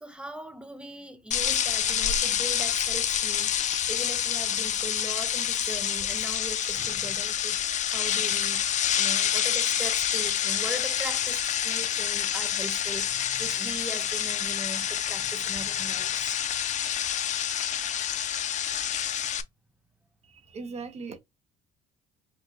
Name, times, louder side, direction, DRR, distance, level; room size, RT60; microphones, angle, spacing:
voice 1, 0.0-3.5 3.9-7.6 7.9-8.6 9.0-16.4, right 1 dB, 5° right, 0.7 m, -40 dB
sound 1, 1.3-19.4, left 9 dB, 45° left, 0.5 m, -28 dB
voice 2, 20.2-21.2, right 4 dB, 40° right, 1.0 m, -39 dB
4.8 x 2.6 x 2.5 m
cardioid pair, 110°, 17 cm